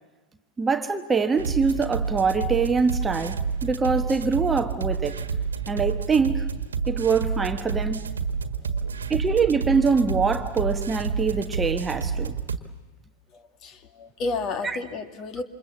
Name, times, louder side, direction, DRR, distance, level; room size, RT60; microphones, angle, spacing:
voice 1, 0.6-5.2 5.7-6.5 6.9-8.0 9.1-12.3 14.6-14.8, right 5 dB, 15° right, 7 dB, 1.2 m, -24 dB
sound 1, 1.4-12.6, right 5 dB, 70° right, 1.6 m, -29 dB
voice 2, 13.3-15.4, left 3 dB, 35° left, 7 dB, 2.3 m, -32 dB
28.5 x 26.5 x 7.4 m, 1.1 s
figure-of-eight pair, 90°, 0 cm